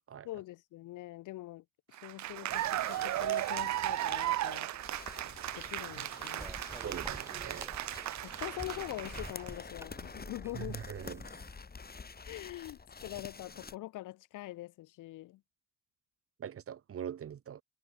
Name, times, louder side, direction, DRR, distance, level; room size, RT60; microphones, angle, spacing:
voice 1, 0.2-4.7 5.5-6.5 8.2-10.8 12.2-15.4, left 16 dB, 85° left, 1.2 m, -44 dB
Cheering / Applause, 1.9-9.5, right 15 dB, 65° right, 0.6 m, -36 dB
sound 1, 2.5-13.8, left 4 dB, 30° left, 6.6 m, -48 dB
sound 2, 6.4-11.5, right 1 dB, 10° right, 2.7 m, -49 dB
voice 2, 6.8-7.7 10.5-11.3 16.4-17.6, right 9 dB, 50° right, 1.3 m, -42 dB
cardioid pair, 90°, 30 cm